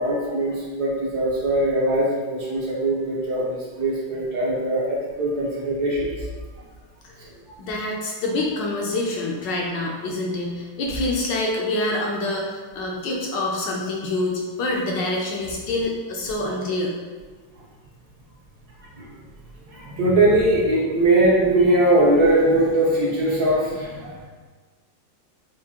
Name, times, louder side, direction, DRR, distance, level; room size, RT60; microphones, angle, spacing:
voice 1, 0.0-6.3 7.2-7.5 18.8-19.1 19.7-24.3, right 1 dB, 60° right, -5 dB, 1.2 m, -21 dB
voice 2, 7.6-17.0, left 2 dB, 75° left, -1 dB, 1.1 m, -26 dB
5.9 x 2.6 x 2.8 m, 1.4 s
omnidirectional pair, 2.2 m